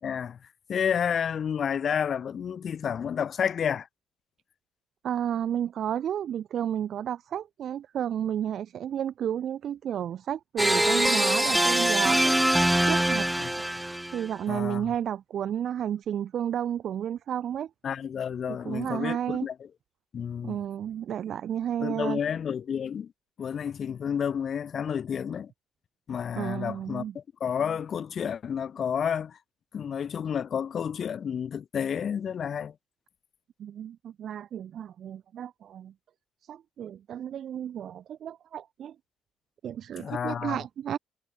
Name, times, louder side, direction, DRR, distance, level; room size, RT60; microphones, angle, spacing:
voice 1, 0.0-0.4 0.7-3.9 13.4-13.5 14.5-14.9 17.8-19.5 20.1-20.6 21.8-23.1 23.4-25.5 26.1-29.4 29.7-32.7 40.0-40.6, left 8 dB, 55° left, 5.3 m, -30 dB
voice 2, 5.0-13.3 14.1-17.7 18.5-19.5 20.4-22.2 26.3-27.2 33.6-35.9 36.4-39.0 39.6-41.0, right 9 dB, 65° right, 2.7 m, -32 dB
sound 1, 10.6-14.3, right 1 dB, 5° right, 2.1 m, -23 dB
cardioid pair, 90°, 0 cm